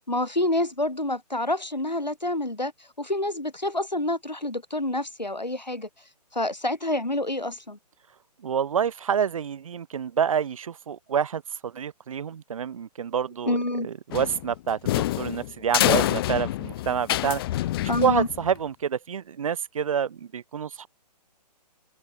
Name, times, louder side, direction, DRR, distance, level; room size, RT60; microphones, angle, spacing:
voice 1, 0.0-2.7 3.0-5.9 6.3-7.8 13.4-13.9 17.9-18.3, left 1 dB, 90° left, 4.2 m, -27 dB
voice 2, 8.4-13.6 13.8-17.4 18.0-20.9, right 7 dB, 55° right, 1.1 m, -27 dB
sound 1, 14.1-18.6, left 15 dB, 35° left, 2.3 m, -26 dB
figure-of-eight pair, 130°, 21 cm